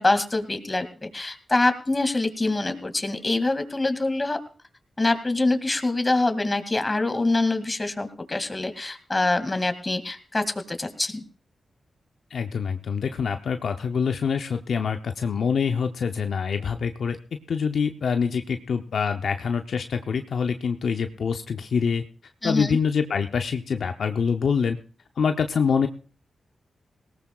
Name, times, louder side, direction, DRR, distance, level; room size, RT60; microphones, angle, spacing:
voice 1, 0.0-4.4 5.0-11.2 22.4-22.8, left 2 dB, 30° left, 9 dB, 2.3 m, -25 dB
voice 2, 12.3-17.2 17.5-22.0 22.4-24.8 25.2-25.9, left 6 dB, 75° left, 6 dB, 0.7 m, -25 dB
19.5 x 17.5 x 2.4 m, 0.39 s
supercardioid pair, 45°, 0 cm